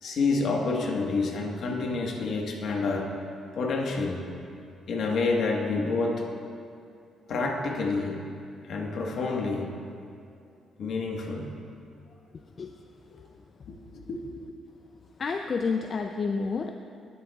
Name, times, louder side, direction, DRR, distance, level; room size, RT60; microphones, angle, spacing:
voice 1, 0.0-3.1 3.5-4.2 4.9-6.2 7.3-8.2 8.6-9.7 10.8-11.5 13.1-13.2 13.7-14.2, left 3 dB, 65° left, 1 dB, 1.3 m, -28 dB
voice 2, 15.2-16.7, left 4 dB, 45° left, 5 dB, 0.4 m, -29 dB
18.0 x 7.0 x 2.3 m, 2.4 s
cardioid pair, 90°, 0 cm